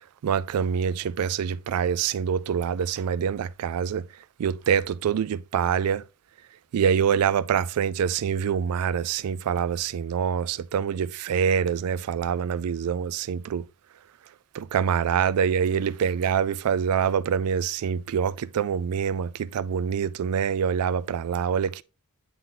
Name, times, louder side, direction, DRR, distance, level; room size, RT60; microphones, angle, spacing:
voice 1, 0.2-4.1 4.4-6.0 6.7-13.6 14.5-21.8, right 7 dB, 80° right, 0.3 m, -25 dB
9.3 x 3.8 x 2.7 m
head